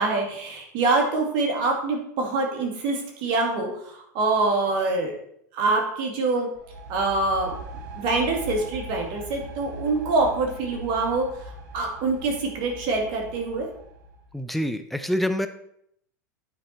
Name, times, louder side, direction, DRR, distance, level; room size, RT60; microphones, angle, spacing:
voice 1, 0.0-5.1 5.5-6.5 6.9-7.6 7.9-13.7, right 3 dB, 50° right, 1 dB, 2.3 m, -25 dB
sound 1, 6.5-14.3, equal, 65° right, 1.2 m, -40 dB
voice 2, 14.3-15.5, equal, ahead, 8 dB, 0.6 m, -26 dB
9.4 x 4.4 x 4.3 m, 0.71 s
hypercardioid pair, 115°, 10 cm